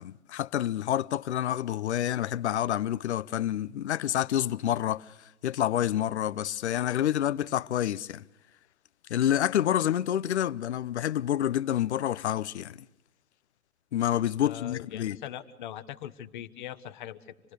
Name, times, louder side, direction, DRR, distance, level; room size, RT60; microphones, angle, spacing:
voice 1, 0.0-5.1 5.4-8.2 9.1-12.8 13.9-15.2, left 11 dB, 50° left, 0.7 m, -28 dB
voice 2, 14.4-17.3, left 11 dB, 35° left, 1.2 m, -41 dB
27.0 x 19.5 x 6.6 m
hypercardioid pair, 155°, 42 cm